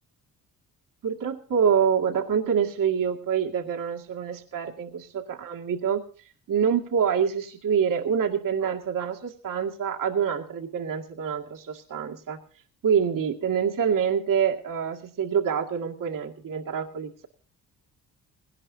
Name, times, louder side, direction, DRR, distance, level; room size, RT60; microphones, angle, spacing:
voice 1, 1.0-6.0 6.5-12.4 12.8-17.3, right 7 dB, 55° right, 2 dB, 2.2 m, -26 dB
20.0 x 18.0 x 2.7 m, 0.40 s
supercardioid pair, 75°, 38 cm